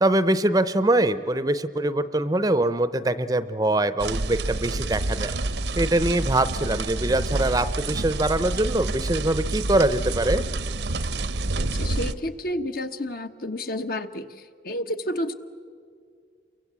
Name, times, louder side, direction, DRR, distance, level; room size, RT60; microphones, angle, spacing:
voice 1, 0.0-5.3 5.8-10.4, right 1 dB, 20° right, 13 dB, 0.6 m, -23 dB
sound 1, 4.0-12.1, right 2 dB, 80° right, 0.9 m, -28 dB
voice 2, 11.7-14.3 14.6-15.3, left 1 dB, 55° left, 8 dB, 1.2 m, -30 dB
29.5 x 23.5 x 8.3 m, 2.1 s
head